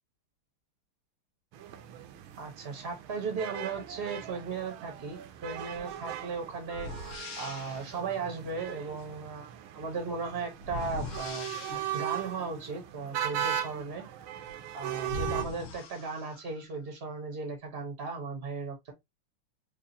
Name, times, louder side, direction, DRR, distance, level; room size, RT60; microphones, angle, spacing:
sound 1, 1.5-15.4, right 11 dB, 75° right, 1.3 m, -39 dB
voice 1, 2.4-6.9 7.4-11.5 11.9-14.0 14.7-18.9, right 4 dB, 45° right, 0.8 m, -36 dB
sound 2, 5.8-5.9 6.7-7.9 10.6-12.2 14.5-14.6 15.0-16.6, left 2 dB, 80° left, 1.7 m, -40 dB
4.7 x 2.5 x 2.6 m
omnidirectional pair, 2.4 m